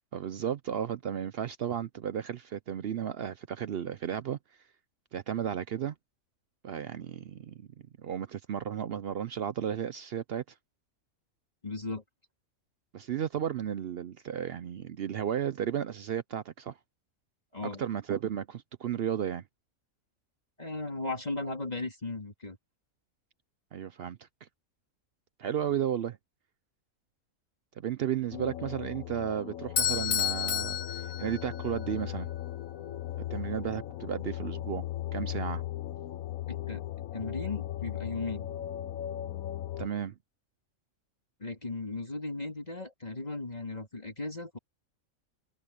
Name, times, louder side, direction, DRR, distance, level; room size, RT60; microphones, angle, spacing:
voice 1, 0.0-4.4 5.1-5.9 6.6-7.7 8.0-10.4 12.9-16.8 17.8-19.4 23.7-24.5 25.4-26.2 27.8-30.8 31.2-32.3 33.3-34.8 35.1-35.6 39.8-40.1, right 9 dB, 60° right, 0.6 m, -33 dB
voice 2, 11.6-12.0 17.5-17.8 20.6-22.6 36.5-36.8 37.1-38.5 41.4-44.6, left 3 dB, 30° left, 2.5 m, -36 dB
Ambient Sound, 28.3-39.9, left 13 dB, 80° left, 1.2 m, -37 dB
Bell / Doorbell, 29.8-31.8, left 9 dB, 50° left, 0.8 m, -30 dB
omnidirectional pair, 1.5 m